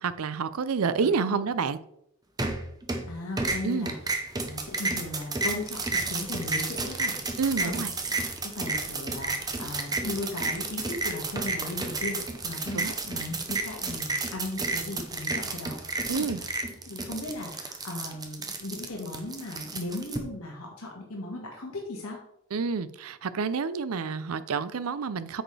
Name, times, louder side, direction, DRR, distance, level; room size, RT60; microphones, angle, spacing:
voice 1, 0.0-1.8 3.6-3.9 7.4-7.9 12.7-12.9 16.1-16.4 22.5-25.4, right 5 dB, 85° right, 15 dB, 0.5 m, -28 dB
voice 2, 1.0-1.4 3.1-7.8 8.4-16.5 16.9-22.2, left 2 dB, 85° left, -1 dB, 1.6 m, -37 dB
sound 1, 2.4-3.1 3.4-20.2, right 3 dB, 20° right, 0.8 m, -31 dB
9.1 x 6.4 x 3.3 m, 0.75 s
head